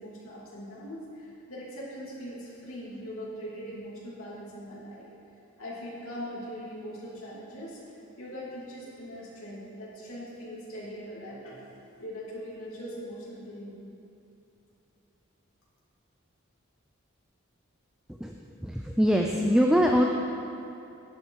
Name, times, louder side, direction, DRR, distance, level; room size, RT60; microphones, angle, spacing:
voice 1, 0.0-5.1 5.6-11.6 12.0-13.8, equal, 90° left, -7 dB, 2.6 m, -41 dB
voice 2, 18.6-20.0, equal, 5° right, 1 dB, 0.4 m, -23 dB
11.5 x 9.1 x 4.7 m, 2.8 s
head